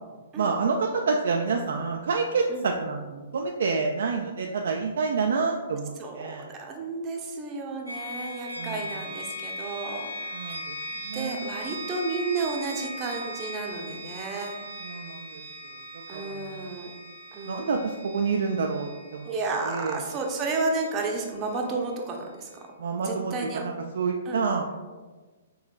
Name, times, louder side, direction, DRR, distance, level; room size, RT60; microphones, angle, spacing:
voice 1, 0.4-6.5 8.6-8.9 10.3-10.8 11.0-11.5 14.8-15.4 16.1-16.7 17.5-19.3 19.6-20.0 22.8-24.8, right 4 dB, 55° right, 2 dB, 0.3 m, -28 dB
voice 2, 6.0-10.1 10.4-10.5 11.1-14.6 16.1-16.9 17.3-17.7 19.2-22.5 23.0-23.6 24.3-24.4, right 3 dB, 25° right, 1 dB, 0.6 m, -32 dB
sound 1, 7.9-21.7, equal, 85° left, 0.9 m, -39 dB
5.3 x 3.9 x 2.3 m, 1.3 s
figure-of-eight pair, 120°, 0 cm